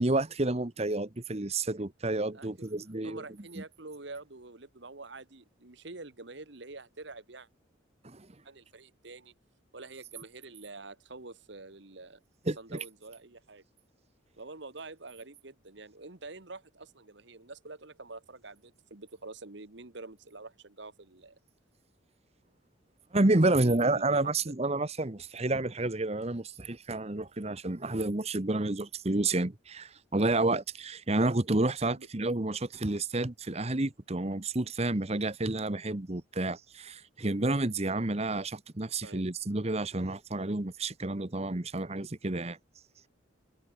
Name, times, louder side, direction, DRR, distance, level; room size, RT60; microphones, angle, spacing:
voice 1, 0.0-3.2 3.6-3.7 8.0-8.3 12.5-12.8 23.1-42.6, right 2 dB, 30° right, 1.1 m, -30 dB
voice 2, 2.3-2.7 3.0-7.5 8.4-9.4 9.7-12.2 12.6-13.6 14.4-21.4 23.5-24.5 31.8-32.1 39.0-39.3, right 3 dB, 60° right, 1.5 m, -47 dB
head